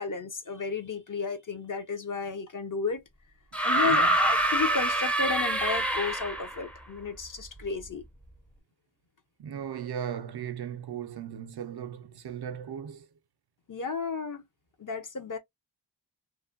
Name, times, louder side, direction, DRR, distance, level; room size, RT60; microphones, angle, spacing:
voice 1, 0.0-3.0 3.6-8.0 13.7-14.4 14.8-15.4, left 5 dB, 45° left, 0.7 m, -33 dB
sound 1, 3.5-6.6 7.8-7.9, right 1 dB, 5° left, 0.5 m, -25 dB
voice 2, 3.8-4.2 9.4-13.1, right 8 dB, 65° right, 0.5 m, -37 dB
3.0 x 2.2 x 2.4 m
wide cardioid pair, 60°, 43 cm